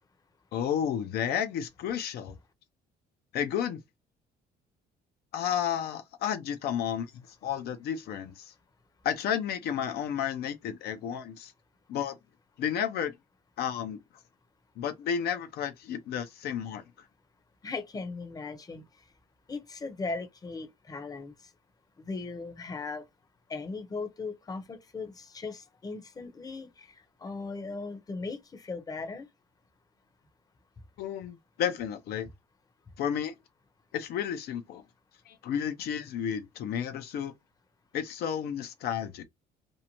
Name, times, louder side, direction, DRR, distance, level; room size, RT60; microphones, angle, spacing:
voice 1, 0.5-2.4 3.3-3.8 5.3-8.5 9.0-11.5 11.9-12.2 12.6-13.1 13.6-14.0 14.8-16.8 31.0-32.3 33.0-33.3 33.9-34.8 35.3-37.3 37.9-39.2, left 8 dB, 70° left, 0.6 m, -32 dB
voice 2, 17.6-18.8 19.5-21.3 22.0-23.0 23.5-26.9 27.2-29.3, left 3 dB, 20° left, 0.7 m, -38 dB
2.6 x 2.1 x 2.9 m
cardioid pair, 110°, 17 cm